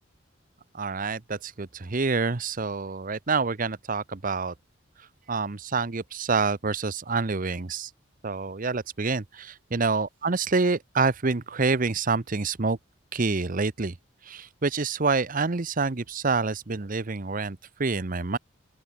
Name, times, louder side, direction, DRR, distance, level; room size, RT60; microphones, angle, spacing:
voice 1, 0.7-4.5 5.3-7.9 8.2-12.8 13.1-13.9 14.2-18.4, right 4 dB, 45° right, 0.9 m, -27 dB
open air
head